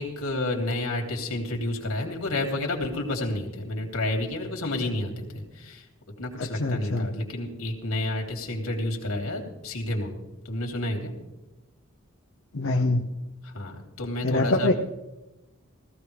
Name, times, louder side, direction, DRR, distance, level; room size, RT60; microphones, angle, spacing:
voice 1, 0.0-5.8 6.2-10.1 10.4-11.1 13.4-14.7, left 1 dB, 90° left, 1 dB, 3.1 m, -30 dB
voice 2, 6.4-7.1 12.5-13.0 14.2-14.7, left 2 dB, 60° left, 0 dB, 0.8 m, -24 dB
18.0 x 15.0 x 3.4 m, 1.0 s
head